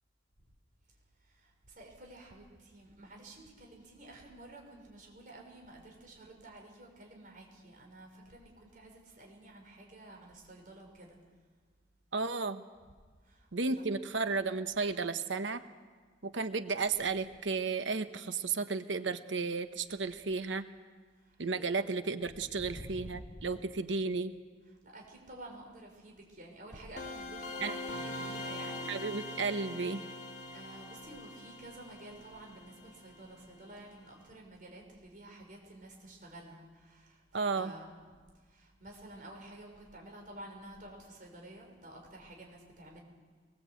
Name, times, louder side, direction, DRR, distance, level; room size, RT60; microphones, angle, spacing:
voice 1, 1.3-11.2 13.2-13.5 21.6-21.9 22.6-23.3 24.8-29.2 30.5-37.2 37.5-38.2 38.5-43.0, right 1 dB, 45° right, 1 dB, 6.1 m, -51 dB
voice 2, 12.1-12.6 13.5-15.6 16.2-20.6 21.4-24.3 27.6-27.7 28.9-30.0 37.3-37.7, right 4 dB, 85° right, 10 dB, 1.1 m, -33 dB
sound 1, 27.0-33.6, left 2 dB, 40° left, 2.3 m, -43 dB
23.5 x 21.0 x 8.5 m, 1.5 s
head